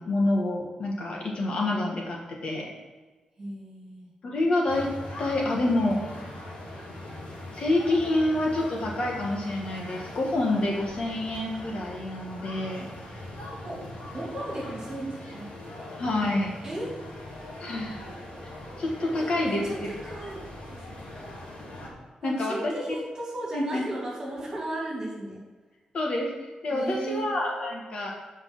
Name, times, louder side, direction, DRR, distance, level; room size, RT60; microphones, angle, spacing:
voice 1, 0.0-2.7 4.2-4.9 5.2-6.0 7.5-12.9 16.0-16.5 17.6-18.0 18.8-19.9 22.2-22.7 23.5-23.8 25.9-26.3 26.6-28.1, left 2 dB, 50° left, -1 dB, 1.5 m, -27 dB
voice 2, 3.4-4.1 13.6-13.9 14.1-15.5 16.6-17.0 19.1-20.4 20.7-20.8 22.2-25.4 26.7-27.3, right 1 dB, 30° right, -4 dB, 2.7 m, -35 dB
sound 1, 4.7-21.9, left 1 dB, 70° left, 2.8 m, -41 dB
7.8 x 5.4 x 6.0 m, 1.2 s
wide cardioid pair, 175°, 2 cm